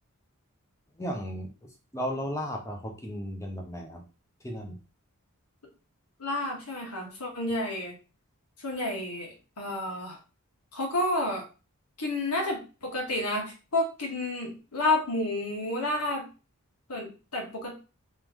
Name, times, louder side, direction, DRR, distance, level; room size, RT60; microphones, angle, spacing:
voice 1, 1.0-1.5 1.9-4.0 4.4-4.8, equal, 15° left, 2 dB, 0.7 m, -34 dB
voice 2, 6.2-7.9 8.6-10.2 10.7-11.4 12.0-16.2 16.9-17.7, left 2 dB, 85° left, 0 dB, 1.5 m, -30 dB
3.2 x 3.1 x 3.6 m, 0.32 s
head